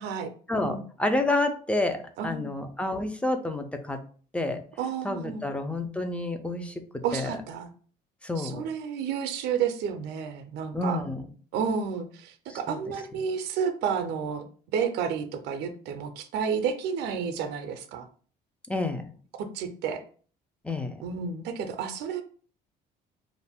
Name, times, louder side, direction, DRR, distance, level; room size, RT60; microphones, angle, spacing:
voice 1, 0.5-2.0 2.2-4.0 4.3-4.6 5.0-6.8 7.1-7.3 8.2-8.7 10.7-11.2 12.5-12.8 18.7-19.1 20.6-21.0, left 2 dB, 5° left, 6 dB, 0.4 m, -29 dB
voice 2, 2.2-2.5 4.8-5.5 7.0-7.7 8.4-11.0 11.5-14.5 14.7-18.1 19.4-20.0 21.0-22.2, right 7 dB, 80° right, 7 dB, 0.5 m, -31 dB
2.5 x 2.1 x 3.4 m, 0.43 s
cardioid pair, 110°, 17 cm